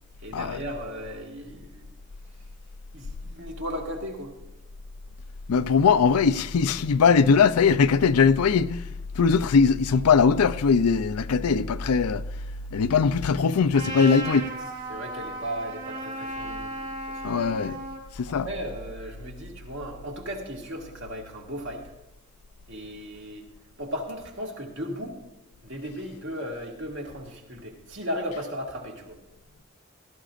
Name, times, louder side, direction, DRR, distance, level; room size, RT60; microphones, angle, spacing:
voice 1, 0.2-1.9 2.9-4.3 14.0-14.4 14.9-17.5 18.3-21.9 22.7-23.4 23.8-25.2 25.6-29.2, equal, 55° right, 2.0 m, -36 dB
voice 2, 5.5-8.8 9.2-12.2 12.7-14.4 17.2-17.8 18.2-18.5, left 5 dB, 85° left, 0.5 m, -20 dB
Trumpet, 13.7-18.0, right 1 dB, 35° right, 2.7 m, -35 dB
16.5 x 13.0 x 2.5 m
head